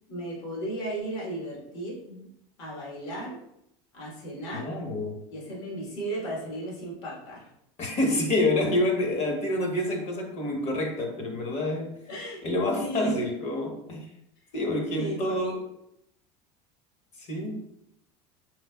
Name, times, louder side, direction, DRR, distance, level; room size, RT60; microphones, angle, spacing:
voice 1, 0.1-2.3 2.6-3.4 3.9-4.7 5.3-7.5 12.1-12.4 12.8-13.1 15.0-15.6, right 1 dB, 75° left, -4 dB, 1.4 m, -35 dB
voice 2, 4.5-5.2 7.8-12.0 12.4-14.1 14.5-15.6 17.2-17.6, left 1 dB, 45° left, 2 dB, 0.9 m, -28 dB
3.3 x 3.2 x 2.2 m, 0.78 s
supercardioid pair, 100°, 15 cm